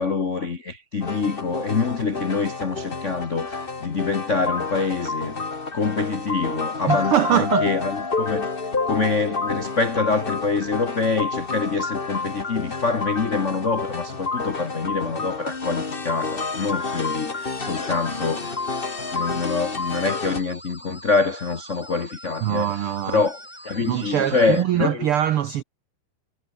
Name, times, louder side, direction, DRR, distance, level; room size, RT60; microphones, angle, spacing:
voice 1, 0.0-5.4 5.7-8.5 8.9-18.5 19.1-23.4 23.6-25.1, left 4 dB, 70° left, 0.7 m, -25 dB
sound 1, 1.0-20.4, left 4 dB, 25° left, 1.4 m, -29 dB
voice 2, 6.9-7.7 22.4-23.2 23.9-25.6, right 11 dB, 80° right, 1.2 m, -22 dB
sound 2, 17.7-24.6, equal, 5° left, 4.9 m, -43 dB
omnidirectional pair, 3.7 m